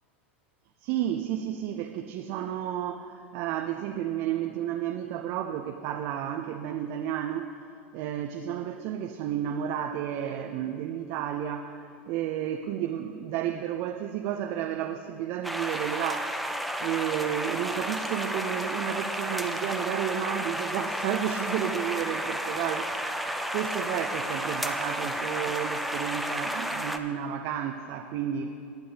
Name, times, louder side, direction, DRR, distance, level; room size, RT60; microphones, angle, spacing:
voice 1, 0.8-7.5 7.9-11.8 12.1-28.5, right 10 dB, 55° right, 4 dB, 0.6 m, -32 dB
sound 1, 15.4-27.0, equal, ahead, 0.6 m, -32 dB
19.5 x 7.6 x 2.8 m, 2.5 s
hypercardioid pair, 95°, 7 cm